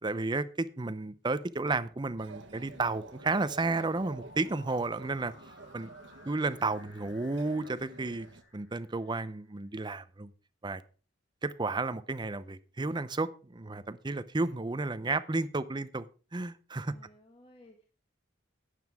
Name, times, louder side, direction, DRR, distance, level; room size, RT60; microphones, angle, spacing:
voice 1, 0.0-5.3 5.7-5.9 6.3-8.3 8.5-10.3 10.6-10.8 11.4-16.1 16.3-16.9, right 3 dB, 25° right, 0.6 m, -32 dB
sound 1, 1.7-9.5, left 3 dB, 90° left, 5.8 m, -58 dB
sound 2, 2.2-8.4, right 3 dB, 65° right, 1.3 m, -51 dB
voice 2, 6.0-6.3 16.8-17.9, left 1 dB, 30° left, 1.5 m, -58 dB
12.0 x 9.2 x 3.5 m
head